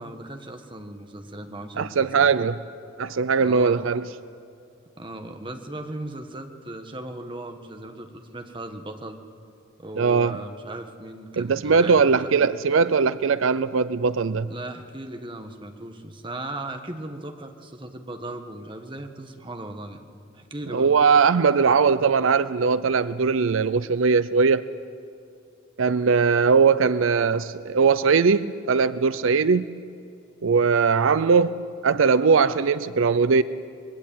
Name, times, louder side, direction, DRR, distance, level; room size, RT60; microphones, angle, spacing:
voice 1, 0.0-2.5 3.4-3.8 5.0-9.2 9.8-12.1 14.5-20.0 20.3-20.9, right 1 dB, 25° right, 1.5 m, -37 dB
voice 2, 1.8-2.6 3.0-4.1 10.0-10.4 11.4-14.5 20.7-24.7 25.8-29.8 30.4-33.4, right 5 dB, 75° right, 0.5 m, -20 dB
25.0 x 21.5 x 9.1 m
head